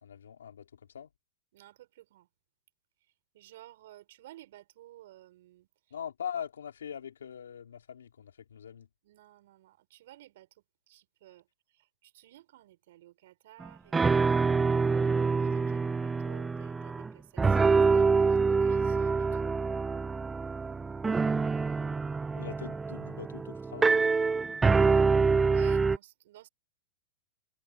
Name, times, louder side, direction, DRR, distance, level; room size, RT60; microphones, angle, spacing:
voice 1, 0.0-1.1 5.9-8.9 22.3-24.0, left 8 dB, 85° left, 3.1 m, -42 dB
voice 2, 1.5-2.3 3.3-5.7 9.0-10.5 10.9-11.4 12.0-19.5 24.9-26.5, right 15 dB, 65° right, 6.0 m, -54 dB
sound 1, 13.6-13.7 13.9-17.1 17.4-26.0, right 4 dB, 15° right, 0.6 m, -26 dB
hypercardioid pair, 110°, 0 cm